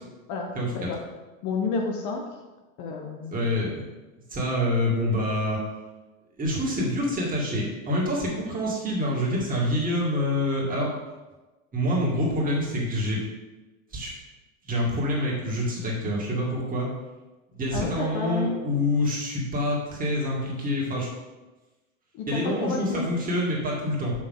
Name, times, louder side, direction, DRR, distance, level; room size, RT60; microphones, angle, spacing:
voice 1, 0.3-1.0 1.4-2.3 2.8-3.5 17.7-18.6 22.1-23.0, left 4 dB, 45° left, 1 dB, 1.1 m, -30 dB
voice 2, 3.3-3.8 4.3-5.6 6.4-10.9 11.7-13.2 13.9-14.1 14.7-16.9 17.5-21.1 22.3-24.1, left 1 dB, 20° right, -4 dB, 2.3 m, -26 dB
6.5 x 6.2 x 3.7 m, 1.1 s
hypercardioid pair, 110°, 43 cm